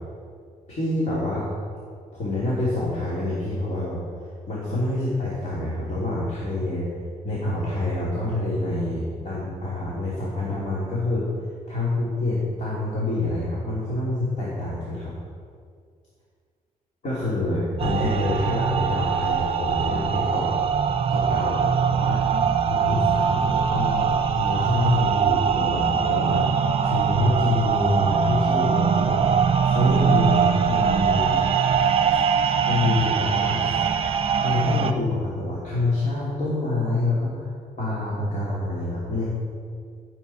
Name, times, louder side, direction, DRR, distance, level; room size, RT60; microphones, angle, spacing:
voice 1, 0.7-1.5 2.1-4.0 4.5-6.9 7.2-11.3 11.7-15.1 17.0-20.5 21.1-22.3 22.7-31.5 32.7-33.6 34.4-37.5 37.8-39.3, left 2 dB, 55° left, -8 dB, 3.2 m, -26 dB
sound 1, 17.8-34.9, right 7 dB, 40° right, 0.7 m, -22 dB
15.0 x 8.1 x 4.3 m, 2.1 s
cardioid pair, 105°, 15 cm